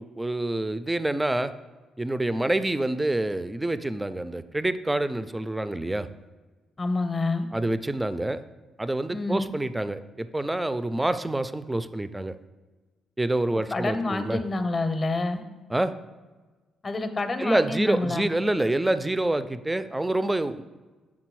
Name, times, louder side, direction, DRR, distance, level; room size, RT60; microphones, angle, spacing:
voice 1, 0.0-1.5 2.0-6.1 7.5-8.4 8.8-12.4 13.2-14.4 15.7-15.9 17.4-20.6, right 1 dB, 10° right, 13 dB, 0.3 m, -27 dB
voice 2, 6.8-7.4 9.1-9.5 13.5-15.4 16.8-18.3, left 2 dB, 30° left, 9 dB, 0.6 m, -28 dB
7.5 x 3.6 x 4.7 m, 1.3 s
cardioid pair, 90°, 0 cm